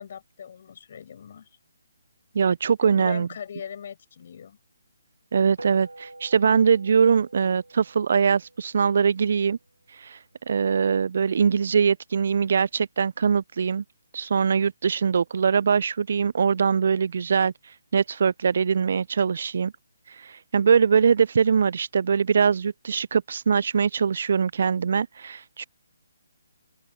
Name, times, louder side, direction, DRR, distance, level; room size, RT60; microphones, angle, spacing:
voice 1, 0.0-1.5 2.8-4.6, left 8 dB, 45° left, 6.2 m, -39 dB
voice 2, 2.3-3.3 5.3-9.6 10.0-10.2 10.5-13.8 14.1-17.5 17.9-19.7 20.5-25.7, right 6 dB, 50° right, 0.7 m, -22 dB
sound 1, 5.6-10.2, right 2 dB, 80° right, 2.9 m, -47 dB
open air
figure-of-eight pair, 140°, 0 cm